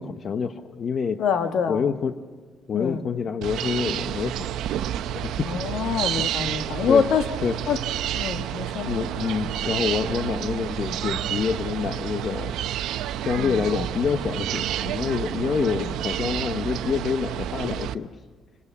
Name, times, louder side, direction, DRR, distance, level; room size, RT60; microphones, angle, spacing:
voice 1, 0.0-1.2 1.7-2.2 2.7-4.5 5.1-5.6 6.8-7.1 7.4-7.6 8.9-12.6 13.2-18.1, left 6 dB, 55° left, 8 dB, 0.9 m, -27 dB
voice 2, 1.2-1.8 2.7-3.1 5.4-7.3 7.7-7.8 8.1-8.9 13.4-13.7 15.7-15.9, left 6 dB, 70° left, 7 dB, 1.6 m, -25 dB
sound 1, 3.4-17.9, right 11 dB, 85° right, 0.8 m, -29 dB
28.5 x 19.5 x 7.2 m, 1.5 s
cardioid pair, 90°, 0 cm